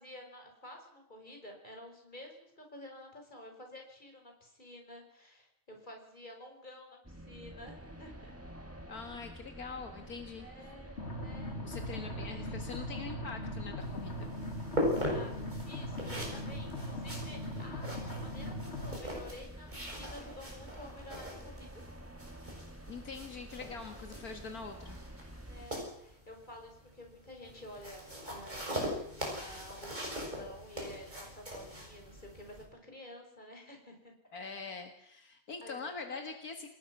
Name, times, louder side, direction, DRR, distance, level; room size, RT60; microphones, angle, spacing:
voice 1, 0.0-8.3 9.0-9.4 10.4-11.6 12.2-12.4 14.9-15.3 15.6-21.9 25.5-28.9 29.2-34.1 35.6-36.2, left 1 dB, 30° left, 2 dB, 5.5 m, -51 dB
sound 1, 7.0-25.7, right 1 dB, 10° right, 1.7 m, -49 dB
voice 2, 8.9-10.5 11.6-14.3 22.9-25.0 34.3-36.7, left 4 dB, 75° left, 5 dB, 2.4 m, -43 dB
sound 2, 11.0-19.0, left 1 dB, 45° left, 2.9 m, -40 dB
sound 3, 13.8-32.6, equal, 30° right, 7.1 m, -41 dB
28.5 x 19.5 x 6.2 m, 0.76 s
omnidirectional pair, 1.6 m